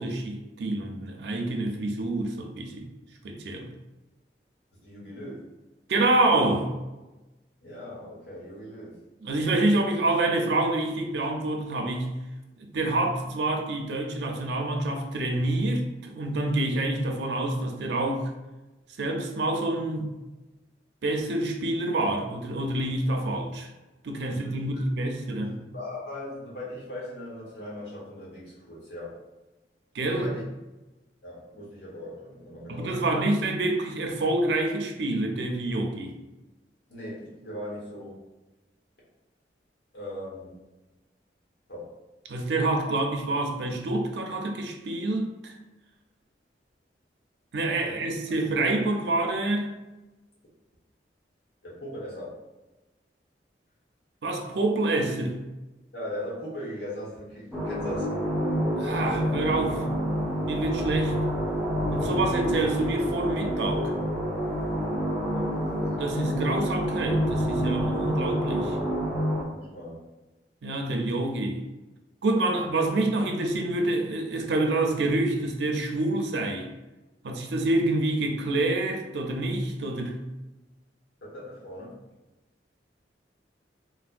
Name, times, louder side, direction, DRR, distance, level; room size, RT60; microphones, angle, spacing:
voice 1, 0.0-2.9 3.2-3.7 5.9-6.7 9.2-12.1 12.6-18.3 19.0-20.1 21.0-23.7 24.0-25.6 29.9-30.3 32.7-36.2 42.3-45.5 47.5-49.7 54.2-55.4 58.8-59.8 60.5-61.1 61.9-63.9 66.0-68.8 70.6-71.6 72.2-76.7 77.2-80.2, right 2 dB, 75° right, 3 dB, 0.5 m, -27 dB
voice 2, 4.7-5.4 7.6-9.0 24.2-24.8 25.3-29.2 30.1-30.4 31.2-33.2 36.9-38.2 39.9-40.5 41.7-41.9 47.8-48.0 51.6-52.4 55.9-58.1 65.2-65.7 66.1-66.3 69.4-70.0 81.2-81.9, left 1 dB, 75° left, -6 dB, 1.2 m, -39 dB
sound 1, 57.5-69.4, equal, ahead, 0.5 m, -28 dB
3.2 x 2.1 x 2.5 m, 1.1 s
head